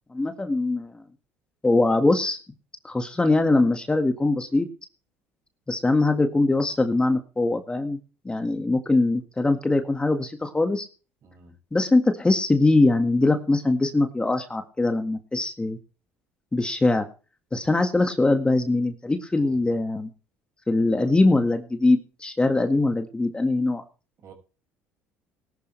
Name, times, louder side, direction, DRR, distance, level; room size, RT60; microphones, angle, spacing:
voice 1, 0.1-0.9 1.6-2.4 2.8-4.7 5.7-8.0 8.3-10.9 11.7-15.8 16.5-17.1 17.5-20.1 20.7-23.8, left 2 dB, 15° left, 1.8 m, -22 dB
voice 2, 11.2-11.5 19.3-19.6 24.2-24.3, right 5 dB, 55° right, 5.7 m, -49 dB
18.5 x 11.5 x 3.3 m
supercardioid pair, 80°, 6 cm